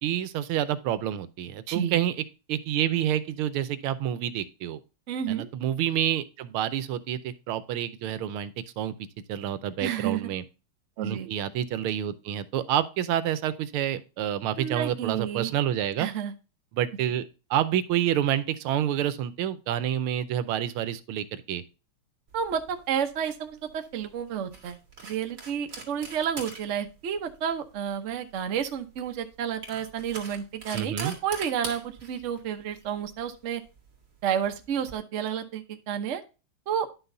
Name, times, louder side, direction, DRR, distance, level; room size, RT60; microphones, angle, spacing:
voice 1, 0.0-4.8 5.3-8.9 9.3-10.4 11.0-16.1 16.7-21.6 30.7-31.1, right 11 dB, 80° right, 14 dB, 1.5 m, -28 dB
voice 2, 1.7-2.0 5.1-5.5 9.8-10.3 11.0-11.3 14.6-15.5 16.0-16.3 22.3-24.8 25.0-33.6 34.2-36.2 36.7-36.9, right 8 dB, 55° right, 7 dB, 0.8 m, -30 dB
sound 1, 22.3-34.9, right 3 dB, 40° right, 2.2 m, -44 dB
11.0 x 6.0 x 2.6 m, 0.32 s
omnidirectional pair, 2.4 m